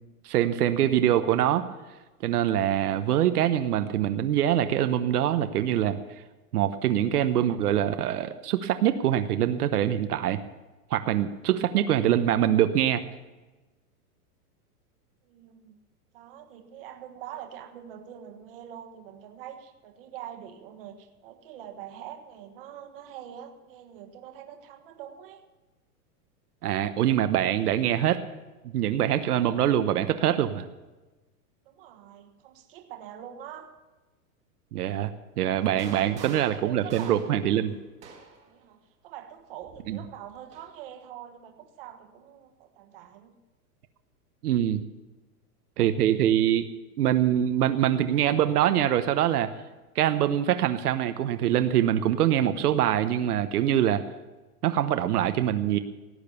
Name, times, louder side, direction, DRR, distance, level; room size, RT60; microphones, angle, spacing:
voice 1, 0.2-1.7 2.2-6.0 6.5-10.4 10.9-13.0 26.6-28.2 28.7-30.7 34.7-35.1 35.4-37.7 39.9-40.0 44.4-44.8 45.8-46.7 47.0-49.5 49.9-54.0 54.6-55.8, right 11 dB, 75° right, 9 dB, 1.0 m, -24 dB
voice 2, 15.2-15.8 16.1-25.4 31.6-33.7 35.8-37.2 38.4-38.8 39.0-43.3, right 10 dB, 35° right, 6 dB, 1.4 m, -44 dB
sound 1, 35.6-38.5 39.6-40.7, right 5 dB, 15° right, 1.5 m, -46 dB
17.5 x 8.9 x 6.9 m, 1.2 s
supercardioid pair, 180°, 46 cm